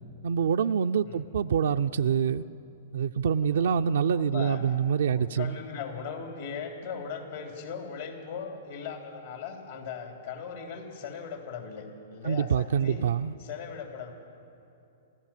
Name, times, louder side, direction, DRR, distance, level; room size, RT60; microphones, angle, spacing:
voice 1, 0.2-2.4 2.9-5.6 12.2-13.3, right 7 dB, 70° right, 0.4 m, -26 dB
voice 2, 3.4-3.8 4.1-4.6 5.0-13.1 13.4-14.1, left 6 dB, 70° left, 3.1 m, -39 dB
30.0 x 13.5 x 7.3 m
hypercardioid pair, 110°, 0 cm